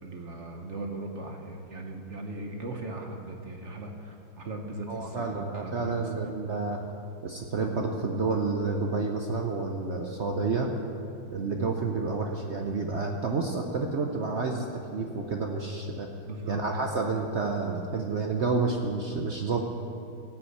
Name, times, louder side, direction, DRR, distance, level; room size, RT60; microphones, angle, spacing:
voice 1, 0.0-6.2 16.3-16.6, right 2 dB, 50° right, 3 dB, 0.9 m, -38 dB
voice 2, 4.9-6.8 7.2-10.7 11.3-16.1 16.5-19.6, right 4 dB, 80° right, 2 dB, 0.6 m, -29 dB
17.0 x 5.9 x 7.9 m, 2.7 s
omnidirectional pair, 2.3 m